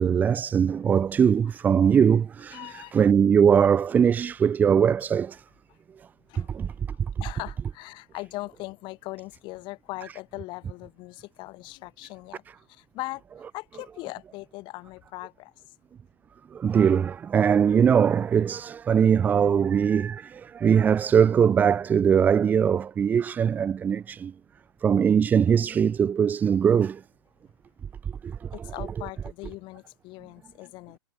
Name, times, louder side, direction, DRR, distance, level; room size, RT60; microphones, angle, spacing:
voice 1, 0.0-5.4 6.4-6.7 16.5-24.3 24.8-27.0 28.2-29.1, right 7 dB, 10° right, 0.4 m, -21 dB
voice 2, 2.5-3.0 6.3-6.5 7.2-12.4 12.7-13.2 13.5-15.5 28.5-31.0, left 21 dB, 30° left, 1.5 m, -39 dB
figure-of-eight pair, 115°, 15 cm